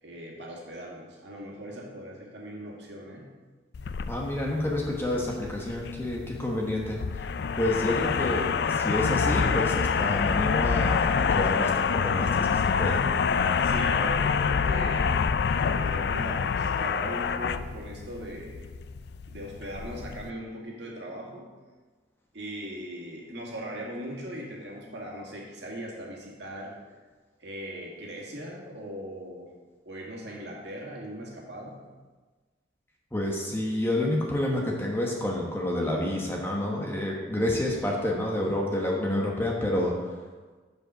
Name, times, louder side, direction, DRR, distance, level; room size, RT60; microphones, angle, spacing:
voice 1, 0.0-3.3 13.6-15.1 15.6-18.7 19.3-21.5 22.3-26.8 27.4-29.5 29.9-31.8, equal, 65° right, -2 dB, 1.9 m, -39 dB
sound 1, 3.7-20.3, left 6 dB, 55° left, 0.3 m, -27 dB
voice 2, 4.1-7.2 7.6-13.0 33.1-40.1, left 1 dB, 10° left, -2 dB, 1.1 m, -29 dB
7.7 x 5.3 x 6.3 m, 1.3 s
head